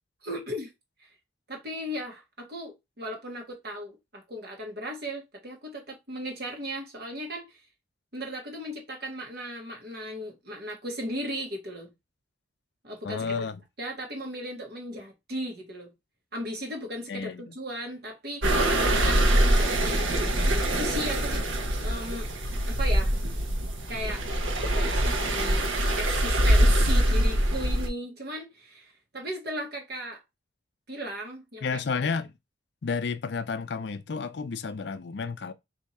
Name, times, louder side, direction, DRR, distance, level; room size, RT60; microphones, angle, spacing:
voice 1, 0.2-0.7 1.5-7.5 8.1-11.9 12.8-13.4 13.8-15.9 16.3-18.5 18.8-22.3 22.7-23.1 23.9-24.2 24.7-25.6 26.0-30.2 30.9-31.8, equal, 50° right, 1.3 m, -36 dB
voice 2, 13.0-13.6 17.1-17.5 31.6-32.3 32.8-35.5, left 5 dB, 55° left, 0.4 m, -31 dB
sound 1, 18.4-27.9, right 1 dB, 75° right, 0.9 m, -24 dB
3.4 x 2.8 x 4.2 m
head